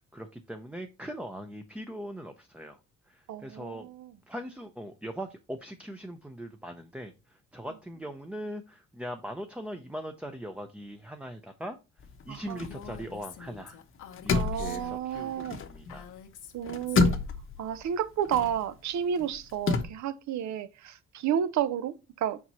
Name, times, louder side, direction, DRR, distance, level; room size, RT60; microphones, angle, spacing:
voice 1, 0.1-2.8 3.1-3.9 4.3-11.8 12.2-13.8 14.2-16.1 17.1-17.2, equal, 5° right, 0.6 m, -40 dB
voice 2, 3.3-4.1 12.3-12.6 14.3-15.6 16.5-17.2 17.6-22.4, right 9 dB, 70° right, 0.7 m, -31 dB
sound 1, 12.0-13.7 13.9-16.2 16.5-19.8, left 4 dB, 45° left, 0.9 m, -30 dB
Female speech woman speaking, 12.6-17.3, left 8 dB, 85° left, 1.1 m, -48 dB
5.0 x 4.6 x 4.1 m
cardioid pair, 90°, 30 cm